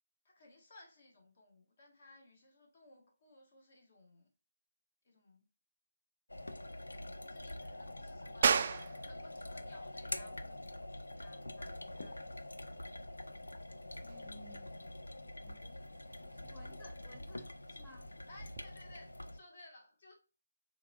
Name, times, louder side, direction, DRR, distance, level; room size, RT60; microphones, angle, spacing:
voice 1, 0.2-4.3 5.0-5.4 6.9-12.6 18.3-20.1, left 2 dB, 50° left, 1.4 m, -60 dB
sound 1, 6.3-19.4, left 1 dB, 85° left, 0.5 m, -46 dB
sound 2, 8.4-18.7, right 6 dB, 45° right, 0.3 m, -40 dB
Fireworks, 12.0-15.0, left 2 dB, 70° left, 0.9 m, -58 dB
voice 2, 14.0-18.1, left 1 dB, 10° left, 1.0 m, -59 dB
4.6 x 3.5 x 2.3 m
figure-of-eight pair, 155°, 0 cm